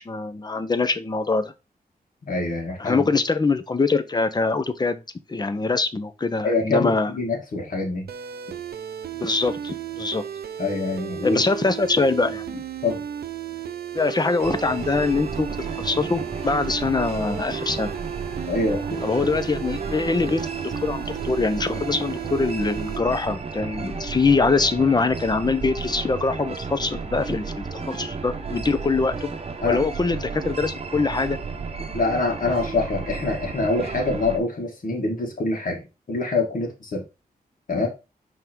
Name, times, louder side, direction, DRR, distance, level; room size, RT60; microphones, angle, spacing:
voice 1, 0.0-1.5 2.8-5.0 5.3-7.1 9.2-10.2 11.2-12.6 13.9-15.5 15.8-17.9 19.0-29.3 29.6-31.4, left 3 dB, 25° left, 0.7 m, -23 dB
voice 2, 2.2-3.0 6.4-8.1 10.6-11.4 12.8-13.0 18.5-19.0 29.6-29.8 31.9-37.0 37.7-37.9, left 3 dB, 60° left, 2.1 m, -25 dB
sound 1, 8.1-23.0, right 9 dB, 80° right, 0.6 m, -34 dB
sound 2, 14.4-34.4, right 5 dB, 40° right, 0.9 m, -33 dB
5.8 x 3.6 x 4.5 m
wide cardioid pair, 105°, 16 cm